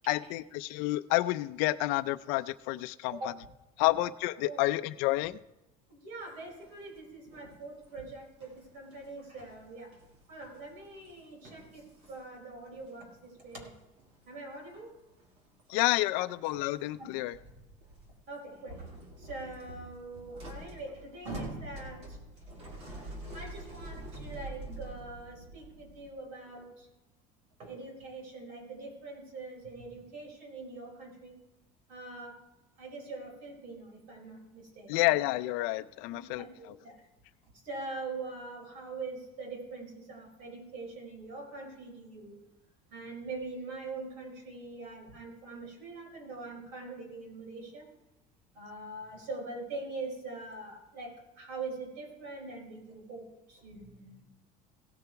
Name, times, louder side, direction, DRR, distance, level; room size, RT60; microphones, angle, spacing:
voice 1, 0.1-3.3 3.8-5.4 15.7-17.4 34.9-36.8, left 18 dB, 70° left, 12 dB, 0.5 m, -29 dB
voice 2, 5.9-9.9 10.3-13.7 14.3-14.9 17.0-17.1 18.3-18.9 19.2-22.2 23.3-26.9 27.6-31.4 31.9-32.4 32.8-35.1 36.1-37.1 37.6-42.3 42.9-47.9 48.5-54.2, right 3 dB, 55° right, 0 dB, 4.5 m, -43 dB
sound 1, 6.4-7.0 7.3-13.0 13.2-14.3 14.5-14.8 15.1-15.8 16.4-18.1 18.6-26.1, right 1 dB, 40° right, 2.3 m, -47 dB
17.0 x 6.9 x 4.7 m, 0.99 s
cardioid pair, 180°, 17 cm